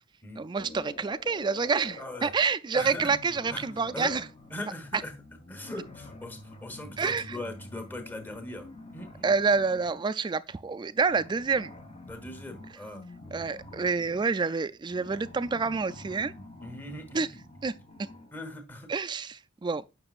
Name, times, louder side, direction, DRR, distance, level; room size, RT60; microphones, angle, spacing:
voice 1, 0.3-4.3 4.9-5.0 7.0-7.4 9.2-11.7 13.3-16.3 17.1-17.3 17.6-17.7 18.0-18.1 18.9-19.8, right 4 dB, 25° right, 0.3 m, -28 dB
sound 1, 0.6-2.3 2.9-10.1 11.0-18.4, left 2 dB, 35° left, 1.2 m, -48 dB
voice 2, 2.0-2.3 2.7-3.1 3.5-3.6 3.9-4.2 4.5-5.1 5.5-9.3 12.1-13.0 16.6-17.2 18.3-18.9, left 1 dB, 10° left, 1.2 m, -39 dB
8.7 x 6.0 x 2.4 m
head